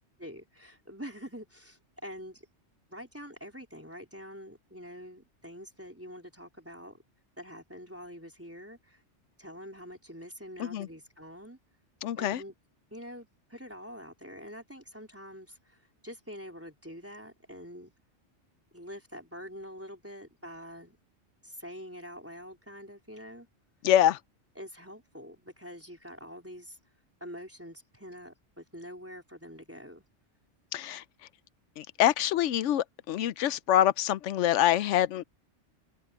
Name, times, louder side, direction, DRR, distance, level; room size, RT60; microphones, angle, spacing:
voice 1, 0.2-2.5 2.9-7.0 7.4-9.0 9.4-11.6 12.2-12.5 12.9-17.9 18.7-21.0 21.4-23.5 24.6-26.8 27.2-30.0, equal, 10° right, 4.1 m, -45 dB
voice 2, 12.0-12.4 23.8-24.2 30.7-31.0 31.8-35.2, left 11 dB, 85° left, 0.9 m, -25 dB
omnidirectional pair, 1.2 m